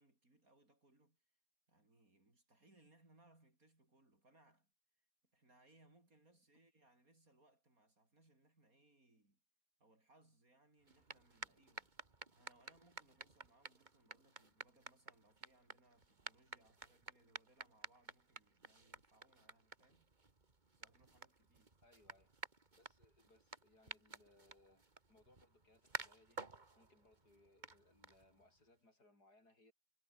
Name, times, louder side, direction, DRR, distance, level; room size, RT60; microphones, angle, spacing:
voice 1, 0.0-1.4 1.7-4.7 5.0-9.4 9.8-11.9 12.3-20.1 20.7-21.8, right 2 dB, 55° right, 7.0 m, -71 dB
sound 1, 10.8-28.6, right 3 dB, 25° right, 2.2 m, -54 dB
voice 2, 21.8-22.4 22.7-29.7, left 2 dB, 70° left, 7.7 m, -70 dB
omnidirectional pair, 1.8 m